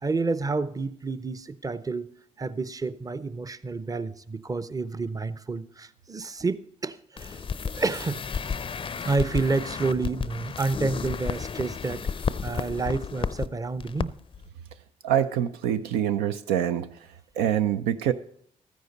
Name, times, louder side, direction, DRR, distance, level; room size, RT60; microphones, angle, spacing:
voice 1, 0.0-2.1 2.4-7.5 7.7-8.2 9.0-14.2, right 3 dB, 20° right, 15 dB, 0.7 m, -29 dB
sound 1, 7.2-13.5 13.8-14.1 14.3-14.5, left 6 dB, 30° left, 0.5 m, -32 dB
voice 2, 15.0-16.9 17.4-18.1, right 10 dB, 80° right, 10 dB, 0.5 m, -25 dB
13.5 x 9.4 x 4.0 m, 0.65 s
hypercardioid pair, 45°, 17 cm